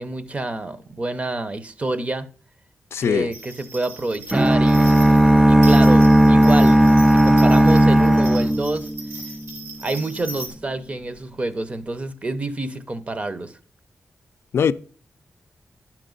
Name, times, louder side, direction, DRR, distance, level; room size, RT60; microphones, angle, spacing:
voice 1, 0.0-2.3 3.0-4.9 5.5-6.8 7.1-8.9 9.8-13.6, right 2 dB, 30° right, 0.7 m, -27 dB
voice 2, 2.9-3.3 14.5-14.7, left 7 dB, 75° left, 0.4 m, -20 dB
sound 1, 3.3-10.5, right 2 dB, 80° right, 2.5 m, -39 dB
sound 2, 4.3-9.3, right 1 dB, 10° right, 0.3 m, -14 dB
10.0 x 6.0 x 3.8 m
wide cardioid pair, 110°, 4 cm